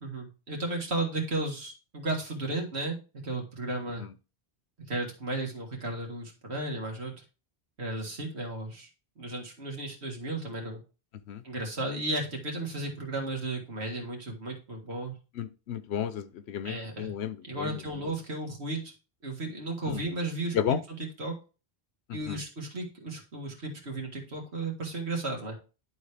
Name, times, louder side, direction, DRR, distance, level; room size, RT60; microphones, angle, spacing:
voice 1, 0.0-4.1 4.9-7.1 7.8-8.9 9.2-10.8 11.4-15.1 16.6-17.1 17.4-18.9 19.2-21.3 22.1-25.6, right 2 dB, 85° right, 0 dB, 2.1 m, -34 dB
voice 2, 15.4-17.8 19.9-20.0 20.5-20.8 22.3-22.4, left 9 dB, 90° left, 13 dB, 0.9 m, -32 dB
11.5 x 3.9 x 3.3 m, 0.34 s
omnidirectional pair, 1.1 m